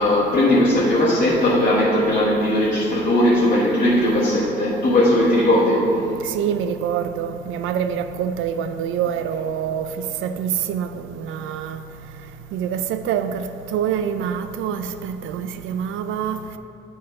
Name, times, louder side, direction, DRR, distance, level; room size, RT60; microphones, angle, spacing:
voice 1, 0.0-6.0 9.8-9.9, left 1 dB, 45° left, -8 dB, 1.5 m, -18 dB
voice 2, 6.3-9.9 10.2-10.9 11.2-11.8 12.5-13.5 13.7-16.4, right 8 dB, 80° right, 9 dB, 0.5 m, -25 dB
8.5 x 4.0 x 4.8 m, 2.7 s
cardioid pair, 90°, 20 cm